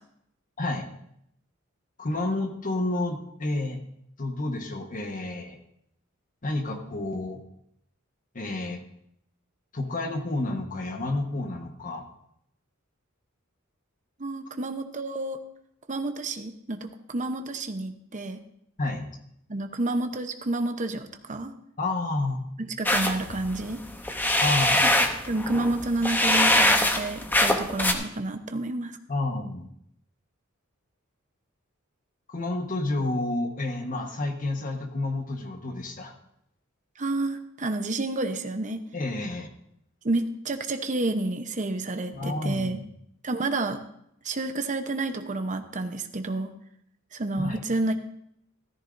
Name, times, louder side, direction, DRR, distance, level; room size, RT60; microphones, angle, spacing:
voice 1, 0.6-0.9 2.0-3.8 4.2-5.6 6.4-7.4 8.3-8.8 9.7-12.1 18.8-19.0 21.8-22.4 24.4-24.9 29.1-29.7 32.3-36.1 38.9-39.5 42.1-42.8 47.4-47.6, left 2 dB, 40° left, 4 dB, 1.3 m, -30 dB
voice 2, 14.2-15.4 15.9-18.4 19.5-21.5 22.6-23.8 24.8-24.9 25.3-29.0 37.0-38.8 40.0-42.8 43.2-43.8 44.2-46.5 47.1-47.9, right 2 dB, 35° right, 7 dB, 0.8 m, -29 dB
sound 1, 22.9-27.9, left 1 dB, 10° left, 0.8 m, -23 dB
14.0 x 13.5 x 2.6 m, 0.74 s
head